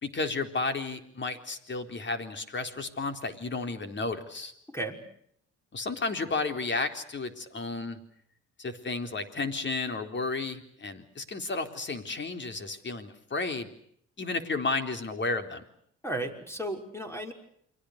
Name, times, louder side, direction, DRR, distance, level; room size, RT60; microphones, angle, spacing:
voice 1, 0.0-4.5 5.7-8.0 8.6-13.7 14.2-15.6, left 3 dB, 40° left, 7 dB, 4.0 m, -32 dB
voice 2, 4.7-5.0 16.0-17.3, right 1 dB, 10° left, 5 dB, 5.7 m, -34 dB
29.5 x 23.5 x 6.7 m, 0.69 s
cardioid pair, 90°, 30 cm